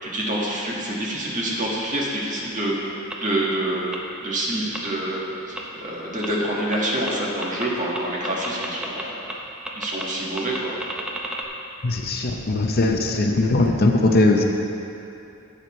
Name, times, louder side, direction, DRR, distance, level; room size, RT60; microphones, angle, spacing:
voice 1, 0.0-2.7 3.2-3.9 4.2-5.2 5.5-9.2 9.7-10.8, right 1 dB, 35° right, -4 dB, 1.6 m, -26 dB
sound 1, 3.1-3.2 3.9-4.0 4.7-4.8 5.6-5.7 6.2-6.3 6.7-6.8 7.1-7.2 7.4-7.7 7.9-9.0 9.3-9.4 9.7-10.0 10.4-11.5, right 1 dB, 5° right, 0.7 m, -31 dB
voice 2, 11.8-14.4, left 2 dB, 45° left, 2 dB, 0.6 m, -20 dB
13.0 x 7.9 x 3.1 m, 2.8 s
head